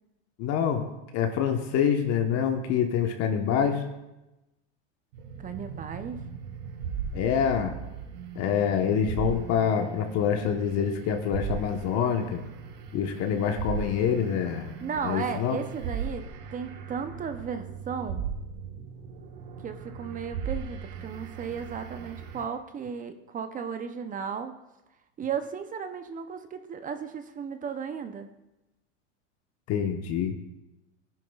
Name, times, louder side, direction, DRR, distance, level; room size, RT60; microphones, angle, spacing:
voice 1, 0.4-0.8 1.1-3.8 7.1-7.7 8.3-12.4 12.9-14.7 15.0-15.6 29.7-30.3, left 8 dB, 45° left, 5 dB, 1.1 m, -26 dB
sound 1, 5.1-22.5, right 6 dB, 65° right, 1.6 m, -38 dB
voice 2, 5.4-6.2 14.8-16.3 16.5-18.3 19.6-24.5 25.2-28.3, right 6 dB, 25° right, 9 dB, 0.6 m, -35 dB
18.5 x 10.5 x 2.4 m, 0.97 s
supercardioid pair, 125°, 35 cm